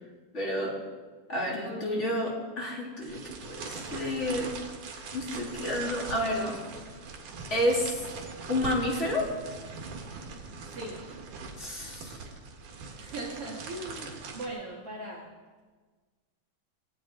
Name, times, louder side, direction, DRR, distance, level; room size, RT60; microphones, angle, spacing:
voice 1, 0.3-0.8 1.3-4.5 5.1-6.6 7.5-8.0 8.5-9.3 11.6-12.2, left 1 dB, 20° left, -3 dB, 3.1 m, -30 dB
voice 2, 1.6-2.2 10.7-11.1 12.9-15.3, right 1 dB, 50° right, -4 dB, 2.7 m, -40 dB
sound 1, 3.0-14.5, right 4 dB, 75° right, 3.2 m, -41 dB
19.0 x 16.5 x 3.9 m, 1.4 s
omnidirectional pair, 3.6 m